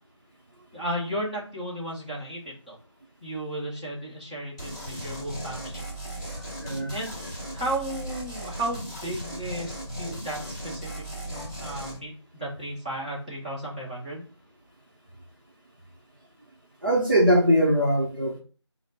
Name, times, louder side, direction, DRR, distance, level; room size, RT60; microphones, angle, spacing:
voice 1, 0.7-2.7 3.2-5.8 6.9-7.2 7.5-14.2, right 1 dB, 15° right, -9 dB, 1.0 m, -34 dB
sound 1, 4.6-12.0, right 1 dB, 10° left, 1.5 m, -37 dB
voice 2, 6.6-7.0 11.3-11.4 16.8-18.4, equal, 45° right, -1 dB, 0.8 m, -21 dB
3.8 x 2.0 x 4.3 m, 0.39 s
figure-of-eight pair, 175°, 15 cm